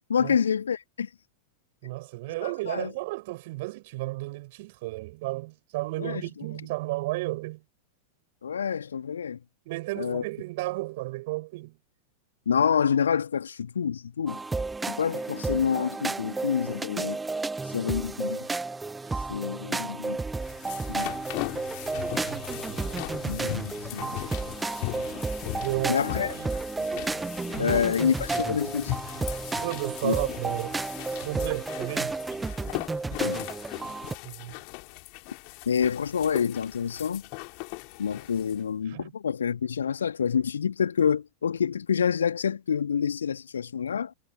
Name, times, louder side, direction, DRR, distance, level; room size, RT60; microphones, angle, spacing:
voice 1, 0.1-1.1 2.4-2.9 6.0-6.2 8.4-9.4 10.0-10.2 12.5-14.4 14.9-17.2 17.7-18.5 19.3-20.2 20.9-21.1 23.3-24.1 25.9-26.3 27.6-28.9 30.0-30.1 33.2-33.4 35.7-37.2 38.0-44.1, left 7 dB, 70° left, 2.4 m, -27 dB
voice 2, 1.8-7.6 9.7-11.8 19.1-19.2 22.2-23.6 24.0-24.5 25.6-26.0 26.3-26.6 27.6-27.8 29.6-30.8 31.2-32.1 34.2-34.6 38.9-39.1, right 21 dB, 50° right, 5.3 m, -33 dB
sound 1, 14.3-34.1, right 3 dB, 10° right, 1.6 m, -32 dB
sound 2, 20.2-38.6, left 40 dB or more, 45° left, 3.3 m, -38 dB
figure-of-eight pair, 90°, 0 cm